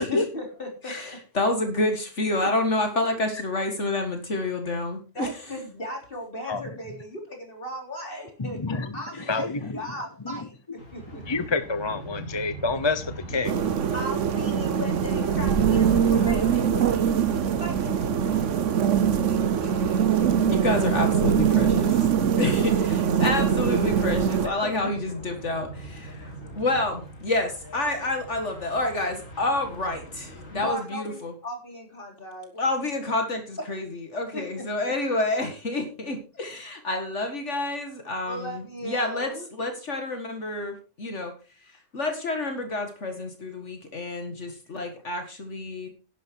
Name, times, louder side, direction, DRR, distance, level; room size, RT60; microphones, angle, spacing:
voice 1, 0.0-1.2 5.1-10.6 10.9-11.4 13.9-18.1 19.3-20.3 21.5-21.8 22.3-22.4 23.2-23.5 24.4-24.9 30.5-32.5 34.3-34.7 38.2-39.5, left 1 dB, 45° left, 2 dB, 4.1 m, -37 dB
voice 2, 0.9-5.3 20.5-21.9 22.4-31.3 32.5-33.9 34.1-39.3 39.6-41.3 41.7-45.9, left 2 dB, 65° left, 5 dB, 2.2 m, -28 dB
voice 3, 8.4-8.9 9.3-9.6 11.3-13.5, left 3 dB, 25° left, 11 dB, 0.8 m, -27 dB
sound 1, 10.8-30.7, right 1 dB, 90° left, 4.4 m, -40 dB
sound 2, 13.4-24.5, right 8 dB, 70° right, 1.2 m, -23 dB
11.5 x 10.5 x 4.6 m, 0.33 s
omnidirectional pair, 1.3 m